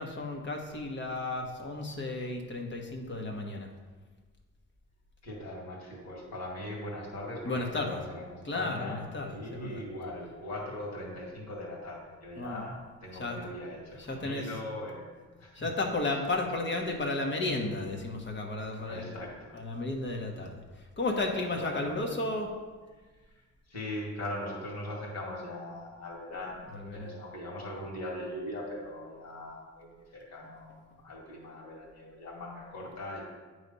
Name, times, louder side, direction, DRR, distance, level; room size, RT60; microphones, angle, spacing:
voice 1, 0.0-3.7 7.4-8.0 8.4-9.8 12.4-12.6 13.2-13.4 14.0-14.5 15.5-19.1 19.5-22.5 26.7-27.1, left 2 dB, 40° left, 2 dB, 1.2 m, -33 dB
voice 2, 5.2-15.1 15.4-15.7 18.9-19.6 21.5-22.2 23.3-23.4 23.7-33.2, left 1 dB, 60° left, -3 dB, 2.2 m, -40 dB
8.7 x 3.3 x 5.4 m, 1.4 s
cardioid pair, 90°, 30 cm